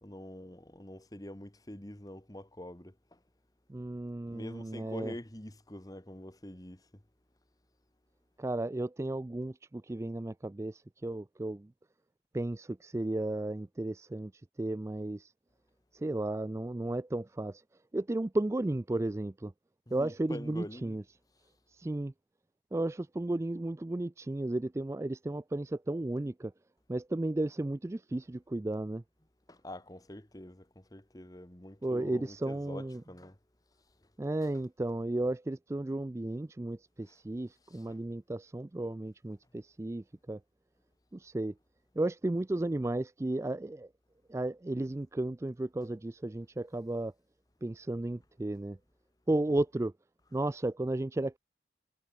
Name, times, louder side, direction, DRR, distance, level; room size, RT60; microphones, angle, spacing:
voice 1, 0.0-3.2 4.3-7.0 19.9-21.0 29.5-33.4 37.1-37.2 37.7-37.9, left 1 dB, 20° left, 1.6 m, -46 dB
voice 2, 3.7-5.1 8.4-11.7 12.3-14.3 14.6-15.3 15.9-17.6 17.9-19.5 19.9-21.0 21.7-22.1 22.7-26.5 26.9-29.0 31.8-33.0 34.2-40.4 41.1-41.5 42.0-43.9 44.3-47.1 47.6-48.8 49.3-49.9 50.3-51.4, right 2 dB, 15° right, 0.3 m, -34 dB
head